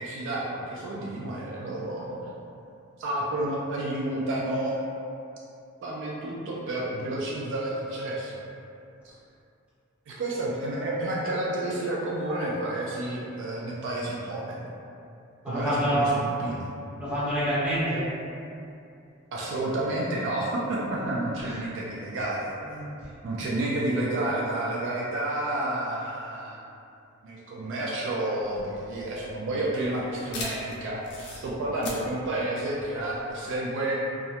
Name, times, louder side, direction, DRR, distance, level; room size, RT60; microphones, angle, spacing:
voice 1, 0.0-2.3 3.0-4.8 5.8-8.4 9.0-9.1 10.1-14.7 15.5-16.7 19.3-22.5 23.2-26.6 27.2-34.0, right 1 dB, 60° right, -5 dB, 0.3 m, -30 dB
voice 2, 15.4-16.1 17.0-18.0 20.9-21.0 21.4-21.6 22.7-23.0, equal, 5° right, -13 dB, 0.8 m, -27 dB
sound 1, 28.4-33.6, left 2 dB, 55° left, 0.4 m, -41 dB
2.3 x 2.0 x 2.7 m, 2.6 s
head